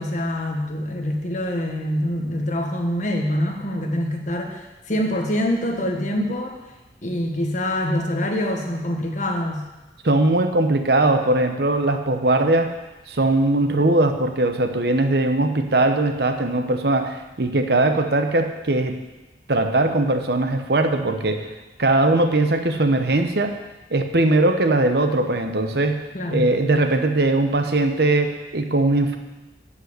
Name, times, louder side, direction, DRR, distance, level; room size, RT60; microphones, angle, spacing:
voice 1, 0.0-6.6 7.0-9.6 26.1-26.5, left 1 dB, 45° left, 2 dB, 1.6 m, -25 dB
voice 2, 10.0-12.7 13.1-19.0 19.5-21.5 21.8-23.6 23.9-26.0 26.3-29.2, right 2 dB, 65° right, 6 dB, 1.0 m, -20 dB
13.0 x 5.5 x 8.2 m, 1.1 s
head